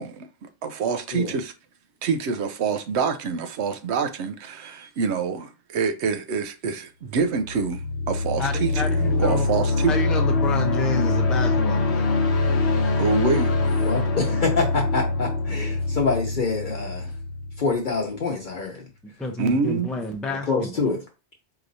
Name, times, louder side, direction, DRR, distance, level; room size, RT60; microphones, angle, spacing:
voice 1, 0.0-1.5 2.0-8.8 9.2-9.9 13.0-13.5 19.4-19.9, right 5 dB, 90° right, 0.9 m, -26 dB
sound 1, 7.4-18.2, left 3 dB, 85° left, 1.0 m, -24 dB
voice 2, 8.4-9.5 9.9-12.2 19.2-20.9, left 2 dB, ahead, 0.4 m, -30 dB
voice 3, 13.8-17.1 17.6-18.8 20.5-21.0, left 4 dB, 50° left, 0.8 m, -26 dB
4.7 x 3.0 x 2.6 m
omnidirectional pair, 1.1 m